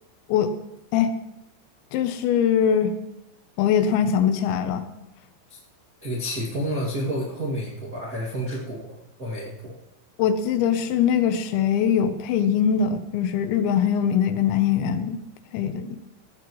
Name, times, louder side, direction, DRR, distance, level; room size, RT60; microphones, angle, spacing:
voice 1, 1.9-2.9 3.6-4.8 10.2-15.2 15.5-16.0, left 8 dB, 80° left, 9 dB, 3.0 m, -22 dB
voice 2, 6.0-8.9 9.2-9.7, equal, 50° right, -4 dB, 1.0 m, -29 dB
17.5 x 14.5 x 3.1 m, 0.91 s
omnidirectional pair, 5.5 m